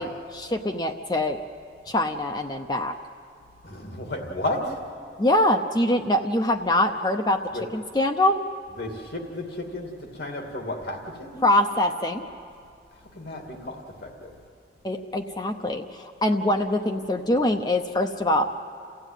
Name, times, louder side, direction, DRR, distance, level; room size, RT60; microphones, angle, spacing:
voice 1, 0.0-1.4 1.9-3.0 5.2-7.4 7.7-8.4 11.4-12.3 14.8-18.4, left 1 dB, 25° left, 4 dB, 0.7 m, -24 dB
voice 2, 3.6-4.8 7.5-7.6 8.8-11.4 12.9-14.3, left 1 dB, 70° left, 2 dB, 2.4 m, -33 dB
29.0 x 15.5 x 9.1 m, 2.4 s
head